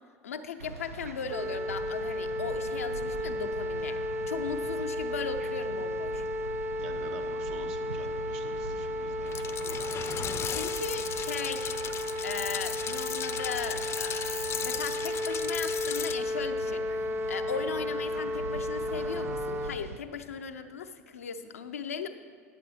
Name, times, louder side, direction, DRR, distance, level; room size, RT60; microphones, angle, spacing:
voice 1, 0.2-4.0 4.3-6.5 10.5-11.7 12.2-16.8 17.3-22.1, left 6 dB, 85° left, 7 dB, 0.6 m, -37 dB
Harlingen beach with dogs, 0.6-20.0, right 4 dB, 90° right, 0.3 m, -43 dB
sound 1, 1.3-19.7, left 1 dB, 25° right, 0.6 m, -33 dB
voice 2, 6.8-9.6, right 5 dB, 70° right, 3 dB, 1.1 m, -46 dB
sound 2, 9.3-16.1, left 9 dB, 35° left, 0.5 m, -36 dB
10.5 x 7.3 x 4.2 m, 2.1 s
hypercardioid pair, 80°, 8 cm